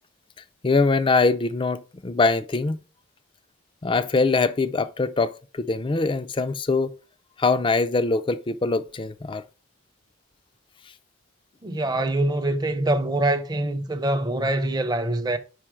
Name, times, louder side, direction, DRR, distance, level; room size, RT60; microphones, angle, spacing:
voice 1, 0.6-2.8 3.8-6.9 7.4-9.4, left 3 dB, 25° left, 0.4 m, -23 dB
voice 2, 11.6-15.4, right 1 dB, 20° right, 0.6 m, -24 dB
5.3 x 4.9 x 4.5 m
head